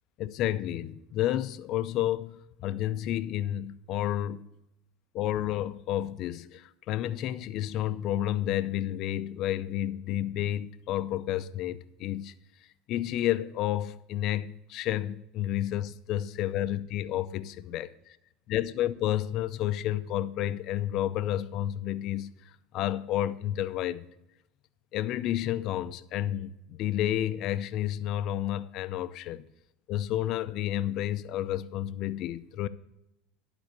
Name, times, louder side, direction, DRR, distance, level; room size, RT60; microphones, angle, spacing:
voice 1, 0.2-4.5 5.1-12.3 12.9-18.2 18.5-22.3 22.7-24.0 24.9-29.5 29.9-32.7, left 12 dB, 55° left, 0.5 m, -31 dB
11.5 x 4.1 x 6.7 m
hypercardioid pair, 95°, 0 cm